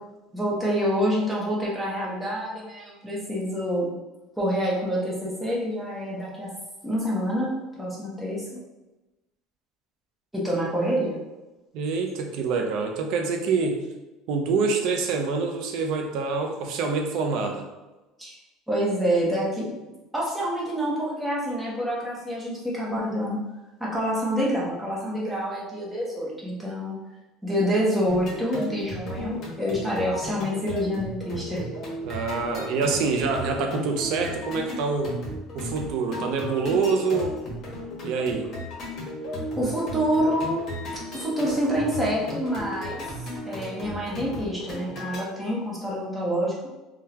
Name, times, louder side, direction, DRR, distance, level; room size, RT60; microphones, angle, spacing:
voice 1, 0.3-3.9 4.4-6.5 6.8-8.5 10.3-11.2 18.2-18.4 18.7-19.7 20.1-23.4 23.8-27.0 27.4-31.6 39.6-40.7 41.1-43.0 43.4-46.5, equal, 5° right, -6 dB, 1.0 m, -27 dB
voice 2, 11.7-13.8 14.3-17.6 32.0-35.2 35.5-37.4 38.0-38.5, right 4 dB, 65° right, 3 dB, 0.6 m, -26 dB
laser ninjas loop, 28.1-45.2, left 1 dB, 45° left, 1.2 m, -35 dB
3.6 x 2.3 x 2.8 m, 1.1 s
supercardioid pair, 120°, 0 cm